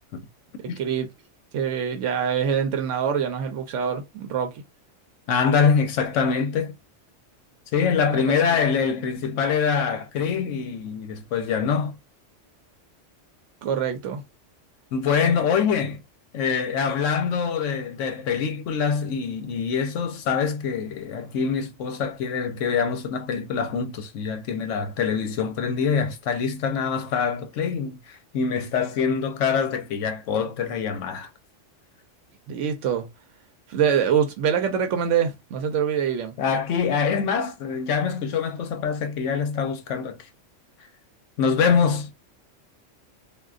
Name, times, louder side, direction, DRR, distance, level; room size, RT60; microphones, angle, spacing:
voice 1, 0.8-1.1 1.5-4.5 8.1-8.3 13.6-14.2 32.5-33.1 33.7-36.3, right 8 dB, 80° right, 0.9 m, -24 dB
voice 2, 5.3-6.7 7.7-11.9 14.9-16.0 16.3-31.3 36.4-40.2 41.4-42.1, left 6 dB, 80° left, 1.0 m, -24 dB
3.6 x 2.5 x 2.4 m
omnidirectional pair, 1.3 m